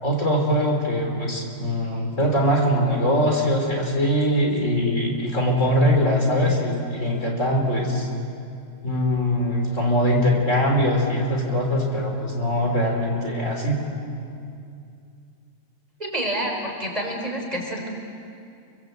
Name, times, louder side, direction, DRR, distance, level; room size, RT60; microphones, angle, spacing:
voice 1, 0.0-8.1 8.8-13.8, equal, 50° left, 1 dB, 4.0 m, -22 dB
voice 2, 16.0-17.9, right 1 dB, 25° right, 0 dB, 4.7 m, -28 dB
28.5 x 24.0 x 8.1 m, 2.5 s
omnidirectional pair, 1.7 m